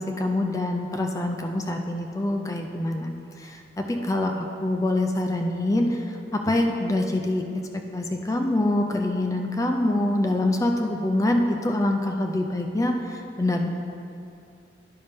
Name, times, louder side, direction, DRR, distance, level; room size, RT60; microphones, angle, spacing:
voice 1, 0.0-13.7, left 1 dB, 20° left, 3 dB, 0.4 m, -25 dB
10.5 x 5.3 x 3.5 m, 2.5 s
head